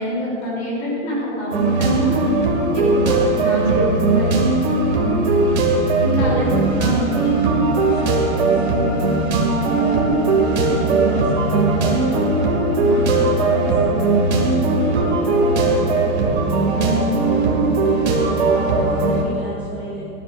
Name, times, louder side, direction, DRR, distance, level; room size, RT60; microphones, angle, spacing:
voice 1, 0.0-2.2 2.7-3.1 3.4-4.3 6.0-6.5 6.8-6.9 12.8-12.9, equal, 25° left, -6 dB, 3.2 m, -25 dB
sound 1, 1.5-19.2, right 3 dB, 55° right, 2.3 m, -18 dB
voice 2, 4.9-5.6 6.2-6.6 6.9-12.5 12.9-18.0 18.2-20.1, right 1 dB, 5° right, -13 dB, 2.6 m, -32 dB
19.0 x 12.5 x 2.6 m, 2.7 s
hypercardioid pair, 180°, 40 cm